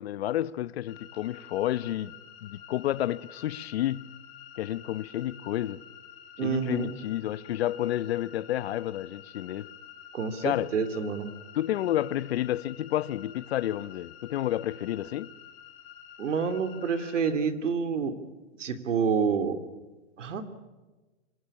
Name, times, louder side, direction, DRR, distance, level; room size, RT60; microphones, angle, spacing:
voice 1, 0.0-2.1 2.4-4.1 4.6-5.8 6.4-9.7 10.4-10.7 11.5-15.3, left 13 dB, 60° left, 0.9 m, -30 dB
sound 1, 0.9-17.3, left 9 dB, 35° left, 5.5 m, -49 dB
voice 2, 6.4-6.9 10.1-11.3 16.2-18.1 18.6-19.6 20.2-20.5, right 6 dB, 90° right, 3.0 m, -28 dB
25.5 x 20.5 x 8.5 m
hypercardioid pair, 160°, 36 cm